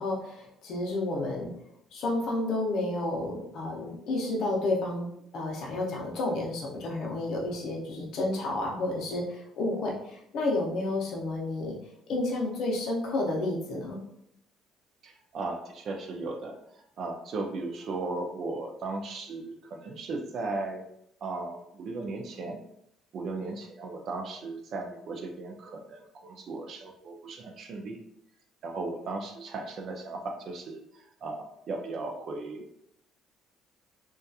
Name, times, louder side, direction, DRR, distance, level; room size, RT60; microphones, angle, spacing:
voice 1, 0.0-1.5 1.9-5.1 5.3-11.8 12.1-14.0, left 2 dB, 50° left, -2 dB, 0.6 m, -31 dB
voice 2, 15.0-20.9 21.2-22.6 23.1-28.0 28.6-32.7, right 3 dB, 40° right, 3 dB, 0.3 m, -36 dB
2.6 x 2.3 x 2.3 m, 0.75 s
cardioid pair, 175°, 0 cm